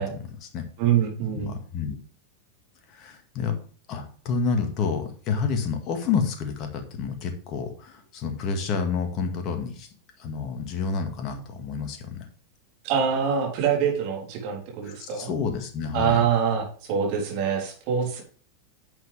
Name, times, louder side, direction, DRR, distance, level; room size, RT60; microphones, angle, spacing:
voice 1, 0.0-0.7 1.3-2.0 2.9-3.5 3.9-9.9 10.2-12.3 14.8-16.2, left 5 dB, 35° left, 5 dB, 2.0 m, -29 dB
voice 2, 0.8-1.5 12.8-15.3 15.9-18.2, right 7 dB, 45° right, 0 dB, 3.6 m, -25 dB
10.5 x 7.3 x 3.5 m, 0.43 s
figure-of-eight pair, 90°, 0 cm